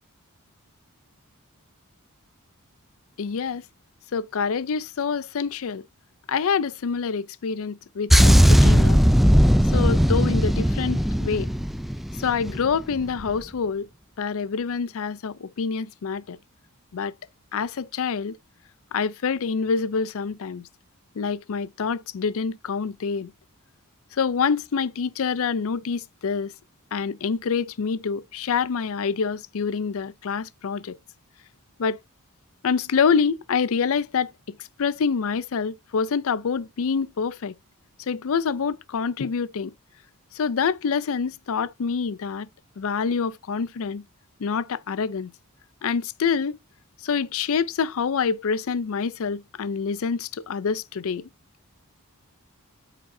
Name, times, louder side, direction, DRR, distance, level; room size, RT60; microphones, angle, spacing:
voice 1, 3.2-3.6 4.1-5.8 6.3-9.0 9.7-11.5 12.2-13.9 14.2-16.4 16.9-17.1 17.5-18.4 18.9-20.7 21.2-23.3 24.1-26.5 26.9-31.0 31.8-32.0 32.6-34.3 34.6-37.5 38.0-39.7 40.3-42.5 42.8-44.0 44.4-45.3 45.8-46.6 47.0-51.3, left 5 dB, 65° left, 0.5 m, -26 dB
sound 1, 8.1-12.7 12.9-13.2, equal, ahead, 0.3 m, -18 dB
8.0 x 6.0 x 2.7 m
head